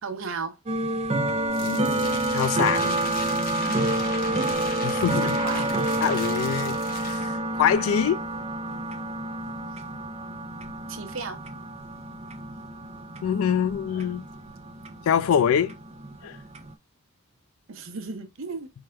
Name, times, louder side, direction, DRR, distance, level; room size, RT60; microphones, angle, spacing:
voice 1, 0.0-0.6 5.2-5.7 10.9-11.4 17.7-18.7, right 4 dB, 65° right, 0.7 m, -34 dB
sound 1, 0.7-16.7, right 2 dB, 30° right, 0.4 m, -29 dB
sound 2, 1.5-7.2, left 4 dB, 40° left, 0.6 m, -38 dB
voice 2, 1.6-3.0 4.8-5.4 6.0-8.2 13.2-14.2 15.1-15.7 16.2-16.4, left 8 dB, 70° left, 0.3 m, -25 dB
4.7 x 2.3 x 3.3 m
head